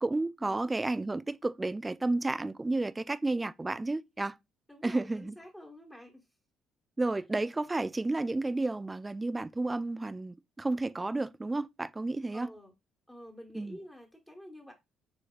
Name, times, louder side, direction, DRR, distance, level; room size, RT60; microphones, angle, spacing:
voice 1, 0.0-4.4 4.8-5.4 7.0-12.5 13.5-13.8, right 2 dB, 20° right, 0.3 m, -32 dB
voice 2, 4.7-6.2 12.3-12.7 13.1-14.7, equal, 5° left, 1.2 m, -49 dB
4.8 x 3.2 x 2.4 m
hypercardioid pair, 50°, 0 cm